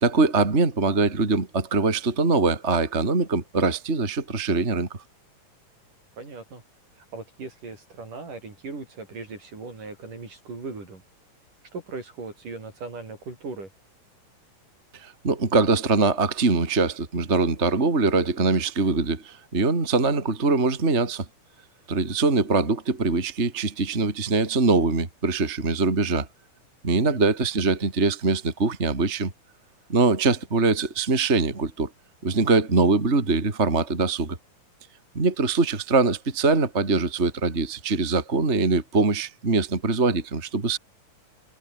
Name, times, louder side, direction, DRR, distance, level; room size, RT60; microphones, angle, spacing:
voice 1, 0.0-4.9 15.0-21.2 21.9-26.3 26.8-29.3 29.9-31.9 32.2-34.4 35.1-40.8, right 3 dB, 20° right, 2.9 m, -23 dB
voice 2, 6.2-6.6 7.0-11.0 11.7-13.7 26.9-27.2, right 4 dB, 65° right, 8.7 m, -38 dB
omnidirectional pair, 4.0 m